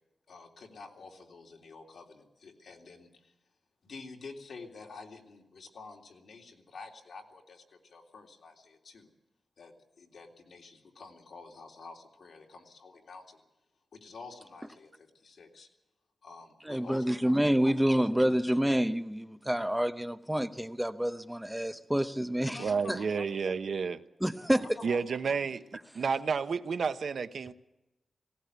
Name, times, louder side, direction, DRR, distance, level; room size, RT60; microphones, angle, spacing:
voice 1, 0.3-3.3 3.8-9.1 9.6-13.4 13.9-15.7 16.2-18.1 22.4-23.3 24.4-25.4, left 4 dB, 80° left, 3.4 m, -49 dB
voice 2, 16.7-22.6 22.9-23.0 24.2-24.7, equal, 5° right, 0.7 m, -28 dB
voice 3, 22.6-24.0 24.8-25.6 25.9-27.5, right 5 dB, 75° right, 0.9 m, -30 dB
18.5 x 18.5 x 8.2 m
wide cardioid pair, 125°, 0 cm